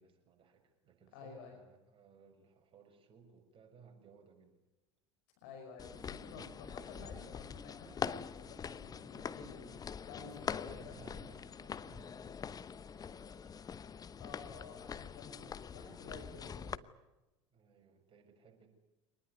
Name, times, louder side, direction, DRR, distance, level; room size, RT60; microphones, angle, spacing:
voice 1, 0.0-4.6 10.6-13.7 15.5-15.6 17.5-18.7, right 6 dB, 35° right, 4 dB, 6.3 m, -61 dB
voice 2, 1.1-1.6 5.4-9.7 10.1-11.0 14.2-16.9, left 4 dB, 60° left, 4 dB, 5.7 m, -52 dB
sound 1, 5.8-16.8, left 7 dB, 25° left, 1.0 m, -44 dB
24.5 x 20.0 x 9.5 m, 0.99 s
figure-of-eight pair, 75°, 15 cm